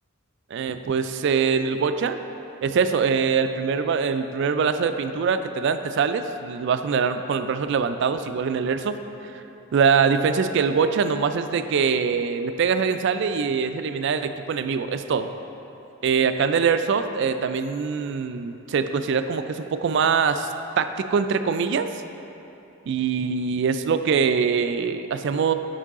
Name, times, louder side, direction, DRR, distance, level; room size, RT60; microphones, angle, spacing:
voice 1, 0.5-2.2 2.6-9.0 9.7-15.3 16.0-20.5 20.8-21.9 22.9-25.5, right 6 dB, 55° right, 9 dB, 0.3 m, -23 dB
8.3 x 5.5 x 3.6 m, 2.9 s
head